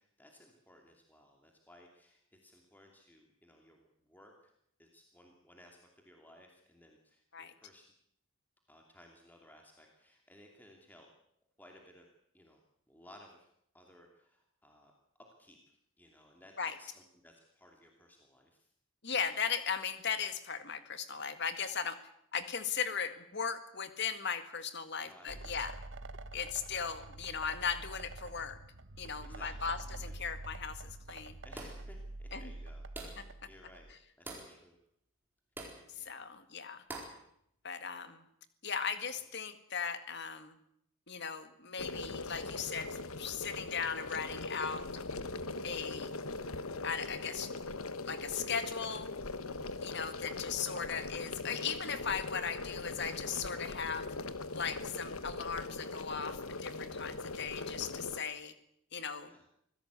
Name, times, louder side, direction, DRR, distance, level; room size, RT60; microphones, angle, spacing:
voice 1, 0.0-4.5 4.8-7.9 8.7-11.1 11.6-12.1 12.3-12.6 12.9-13.5 13.7-14.9 15.4-15.6 16.0-18.7 25.0-25.5 29.2-29.7 30.0-30.2 31.4-34.8 35.9-36.3 39.0-39.2 59.2-59.4, left 1 dB, 10° left, 1 dB, 2.7 m, -60 dB
voice 2, 19.0-22.0 22.3-25.7 26.3-28.6 29.0-31.4 32.3-32.5 33.2-33.3 36.0-36.8 37.6-38.2 38.6-40.6 41.1-44.9 45.6-46.1 46.8-47.5 48.1-49.1 49.8-54.1 54.5-58.5 58.9-59.3, left 6 dB, 50° left, 10 dB, 1.9 m, -37 dB
sound 1, 25.3-33.9, right 2 dB, 60° right, 1.4 m, -46 dB
sound 2, 31.6-31.9 33.0-33.3 34.3-34.6 35.6-35.8 36.9-37.2, right 2 dB, 10° right, 4.2 m, -45 dB
sound 3, 41.8-58.2, left 3 dB, 75° left, 1.3 m, -41 dB
25.0 x 16.5 x 8.3 m, 0.73 s
head